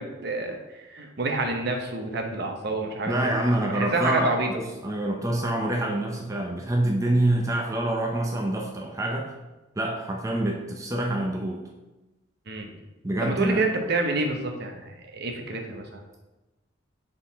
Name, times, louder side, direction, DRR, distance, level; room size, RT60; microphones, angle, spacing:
voice 1, 0.0-3.4 3.7-4.5 12.5-12.7 13.2-16.0, right 2 dB, 55° right, 3 dB, 0.9 m, -28 dB
voice 2, 3.1-9.3 9.8-11.6 13.0-13.6, right 1 dB, 15° right, 0 dB, 0.5 m, -26 dB
6.9 x 3.8 x 4.0 m, 1.1 s
head